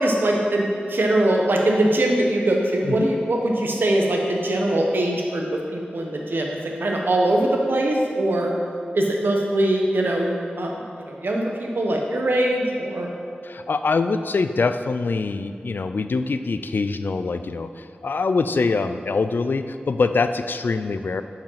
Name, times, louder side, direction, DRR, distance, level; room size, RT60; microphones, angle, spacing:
voice 1, 0.0-8.5 8.9-13.1, right 1 dB, 70° right, 0 dB, 1.1 m, -22 dB
voice 2, 13.4-21.2, left 4 dB, 65° left, 10 dB, 0.4 m, -24 dB
7.4 x 4.8 x 5.7 m, 2.3 s
wide cardioid pair, 95°, 4 cm